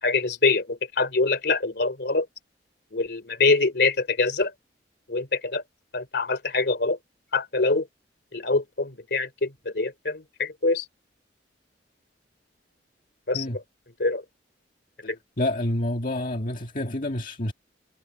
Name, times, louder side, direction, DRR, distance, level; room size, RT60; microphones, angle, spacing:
voice 1, 0.0-2.3 2.9-4.5 5.1-5.6 5.9-7.0 7.3-7.9 8.3-10.8 13.3-13.4 14.0-14.2 15.0-15.2, left 3 dB, 65° left, 3.0 m, -24 dB
voice 2, 15.4-17.5, left 1 dB, 50° left, 2.1 m, -28 dB
head